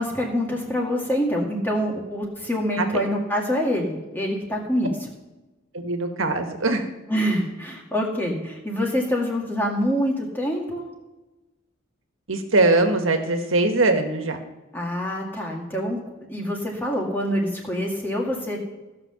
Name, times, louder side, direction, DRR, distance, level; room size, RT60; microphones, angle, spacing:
voice 1, 0.0-4.9 7.1-10.8 14.7-16.0 16.3-18.6, equal, 10° left, -1 dB, 1.9 m, -25 dB
voice 2, 5.7-6.8 12.3-14.4, right 2 dB, 85° right, 6 dB, 1.5 m, -21 dB
15.5 x 5.8 x 6.8 m, 1.1 s
head